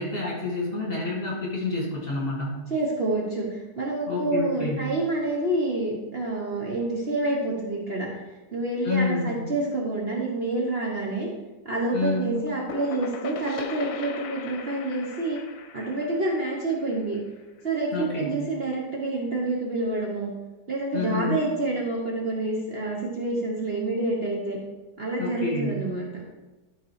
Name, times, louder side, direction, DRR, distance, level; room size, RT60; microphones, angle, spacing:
voice 1, 0.0-2.6 4.1-4.8 8.8-9.4 11.9-12.4 17.9-18.4 20.9-21.4 25.2-25.8, left 3 dB, 35° left, -4 dB, 2.2 m, -28 dB
voice 2, 2.7-8.1 8.5-11.3 11.6-15.4 15.7-17.2 17.6-20.3 20.7-24.6 25.0-26.1, right 2 dB, 40° right, -3 dB, 1.2 m, -28 dB
sound 1, 12.2-17.8, left 5 dB, 70° left, 1.2 m, -39 dB
12.0 x 4.2 x 4.7 m, 1.2 s
omnidirectional pair, 1.8 m